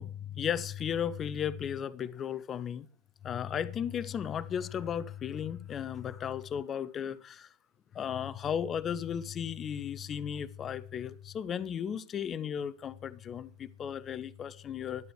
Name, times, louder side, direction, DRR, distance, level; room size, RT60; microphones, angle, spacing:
voice 1, 0.0-2.9 3.2-7.5 7.9-15.1, left 8 dB, 25° left, 0.6 m, -35 dB
12.0 x 11.5 x 4.7 m
figure-of-eight pair, 90°, 0 cm